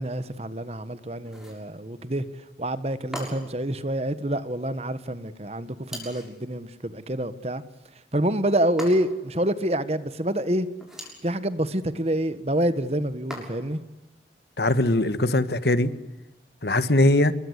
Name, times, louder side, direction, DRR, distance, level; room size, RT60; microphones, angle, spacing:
voice 1, 0.0-2.3 2.6-7.6 8.1-10.7 11.2-13.8, right 1 dB, 35° right, 1.4 m, -27 dB
sound 1, 1.2-1.7 3.1-3.6 5.9-6.4 8.8-9.3 10.7-11.3 13.3-13.8, equal, 5° right, 6.6 m, -39 dB
voice 2, 14.6-15.9 16.6-17.3, left 1 dB, 70° left, 1.7 m, -20 dB
27.5 x 23.0 x 8.2 m
head